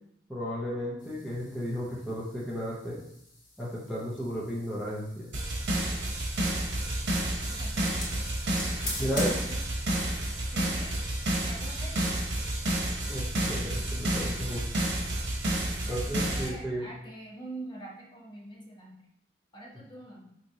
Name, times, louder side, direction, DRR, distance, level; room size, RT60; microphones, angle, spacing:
voice 1, 0.3-3.0 3.6-5.3 9.0-9.4 13.1-14.9 15.8-16.9, equal, ahead, -7 dB, 0.7 m, -34 dB
sound 1, 1.0-10.4, left 1 dB, 50° left, 1.6 m, -45 dB
sound 2, 5.3-16.5, right 1 dB, 85° right, 1.0 m, -30 dB
voice 2, 7.5-8.2 8.8-9.6 10.5-11.0 11.5-12.0 15.9-18.9 19.5-20.2, right 2 dB, 25° left, -3 dB, 1.0 m, -45 dB
4.8 x 3.0 x 2.7 m, 0.75 s
head